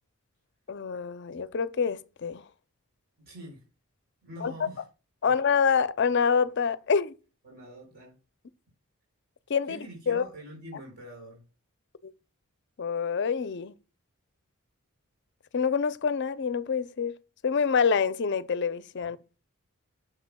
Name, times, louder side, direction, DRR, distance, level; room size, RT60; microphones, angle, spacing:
voice 1, 0.7-2.4 4.4-4.5 5.2-7.1 9.5-9.8 10.1-10.2 12.8-13.7 15.5-17.2 17.4-19.2, left 6 dB, 55° left, 0.5 m, -26 dB
voice 2, 3.3-3.6 4.2-4.8 5.2-5.4 7.4-8.2 9.7-11.4 19.0-19.1, right 1 dB, 45° right, 3.9 m, -45 dB
9.5 x 6.8 x 2.2 m
head